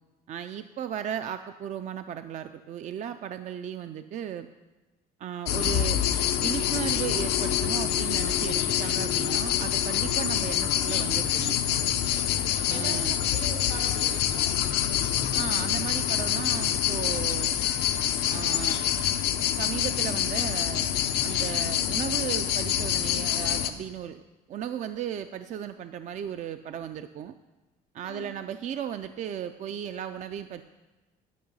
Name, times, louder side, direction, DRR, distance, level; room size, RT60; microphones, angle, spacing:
voice 1, 0.3-4.5 5.2-6.0 6.4-11.6 12.7-13.1 15.3-17.6 18.3-18.9 19.6-27.4 27.9-30.6, right 9 dB, 45° right, 10 dB, 0.4 m, -36 dB
sound 1, 5.5-23.7, left 10 dB, 90° left, 0.6 m, -26 dB
voice 2, 12.7-15.1 28.0-28.3, right 4 dB, 80° right, 4 dB, 1.7 m, -42 dB
11.5 x 5.8 x 5.4 m, 1.1 s
cardioid pair, 110°, 17 cm